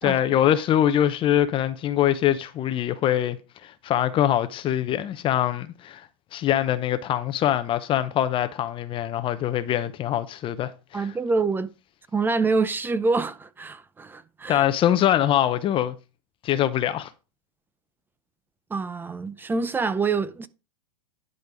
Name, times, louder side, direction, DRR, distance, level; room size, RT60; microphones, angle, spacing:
voice 1, 0.0-3.4 3.6-6.1 6.3-11.1 14.5-15.9 16.4-17.1, left 11 dB, 30° left, 0.7 m, -23 dB
voice 2, 10.9-11.7 12.1-14.7 18.7-20.5, right 4 dB, 10° right, 0.6 m, -26 dB
10.5 x 5.3 x 5.0 m
hypercardioid pair, 120°, 18 cm